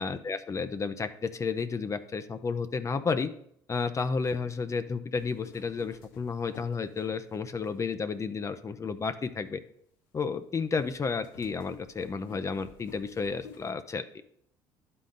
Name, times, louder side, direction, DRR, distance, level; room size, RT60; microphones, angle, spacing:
voice 1, 0.0-3.3 3.7-9.6 10.1-14.0, left 5 dB, 30° left, 10 dB, 0.5 m, -32 dB
sound 1, 5.1-7.7 8.4-8.5 10.8-13.7, left 6 dB, 90° left, 0.9 m, -51 dB
11.5 x 3.8 x 3.8 m, 0.69 s
supercardioid pair, 75°, 10 cm